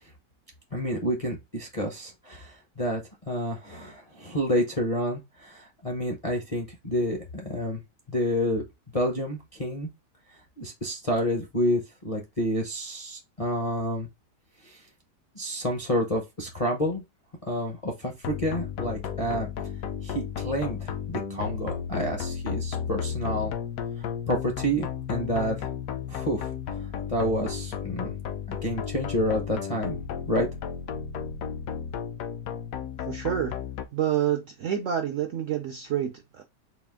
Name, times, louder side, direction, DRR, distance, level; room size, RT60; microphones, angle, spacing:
voice 1, 0.7-7.8 8.1-8.6 8.9-9.9 10.6-14.1 14.6-14.8 15.4-17.0 17.5-19.5 20.0-23.5 24.3-25.7 26.1-26.5 27.1-28.1 28.5-30.0 30.3-30.5, equal, 35° left, 0.5 m, -29 dB
sound 1, 18.2-33.8, left 8 dB, 65° left, 0.9 m, -33 dB
voice 2, 33.1-33.6 33.9-36.4, right 10 dB, 70° right, 0.7 m, -28 dB
4.2 x 2.4 x 3.5 m
omnidirectional pair, 1.8 m